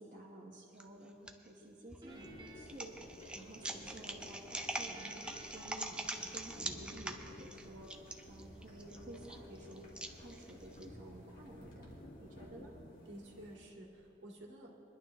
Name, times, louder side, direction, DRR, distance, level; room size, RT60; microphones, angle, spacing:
voice 1, 0.0-8.0 8.3-11.9 12.2-12.7, right 1 dB, 50° right, -5 dB, 1.3 m, -52 dB
sound 1, 0.8-1.3 1.9-10.9, right 1 dB, 5° right, 0.6 m, -43 dB
Guitar, 2.0-4.2 4.5-6.8, right 1 dB, 25° right, 1.4 m, -57 dB
sound 2, 2.1-13.6, equal, 50° left, 2.2 m, -54 dB
voice 2, 12.3-12.7 13.1-14.7, right 1 dB, 70° right, -1 dB, 2.1 m, -52 dB
22.0 x 11.0 x 3.1 m, 3.0 s
head